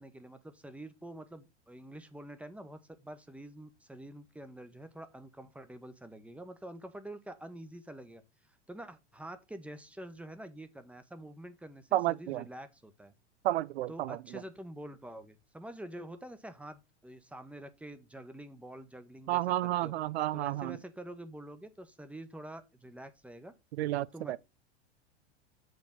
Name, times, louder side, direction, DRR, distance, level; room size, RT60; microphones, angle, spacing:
voice 1, 0.0-8.2 8.7-13.1 13.9-19.9 20.3-23.5 24.1-24.4, right 1 dB, 5° right, 1.0 m, -47 dB
voice 2, 11.9-12.4 13.4-14.2 19.3-20.8 23.7-24.4, right 15 dB, 65° right, 0.6 m, -31 dB
7.8 x 3.4 x 5.8 m
figure-of-eight pair, 90°, 35 cm